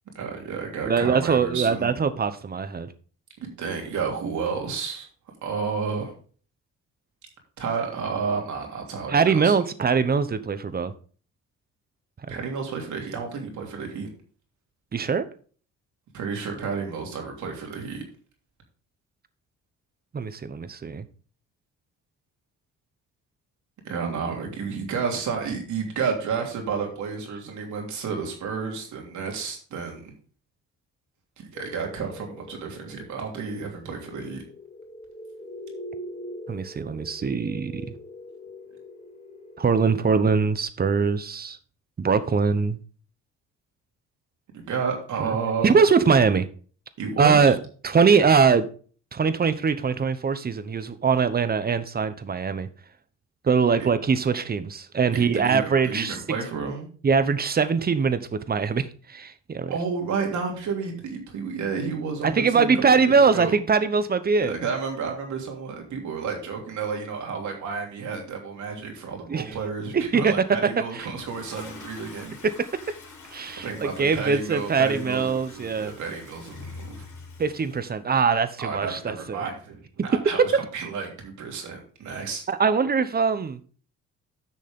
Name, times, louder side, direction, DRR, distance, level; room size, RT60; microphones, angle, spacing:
voice 1, 0.1-1.9 3.4-5.1 5.4-6.1 7.6-9.5 12.3-14.1 16.1-18.0 23.8-30.1 31.4-34.4 44.5-45.8 47.0-47.5 53.8-53.9 55.1-56.8 59.7-63.5 64.4-72.4 73.6-77.0 78.6-82.4, right 5 dB, 70° right, 3.1 m, -31 dB
voice 2, 0.8-2.9 9.1-10.9 14.9-15.3 20.1-21.0 36.5-37.8 39.6-41.6 42.0-42.8 45.2-45.4 45.6-46.5 47.2-47.6 47.8-48.7 49.1-52.7 53.4-56.2 57.0-59.7 62.2-64.5 69.3-69.5 69.9-70.3 70.9-71.1 73.3-75.9 77.4-79.4 82.5-83.6, right 5 dB, 30° right, 1.0 m, -22 dB
sound 1, 31.5-40.3, left 1 dB, 25° left, 1.1 m, -42 dB
Toilet flush, 71.0-77.9, left 4 dB, 85° left, 3.6 m, -45 dB
10.5 x 6.3 x 3.7 m
cardioid pair, 90°, 30 cm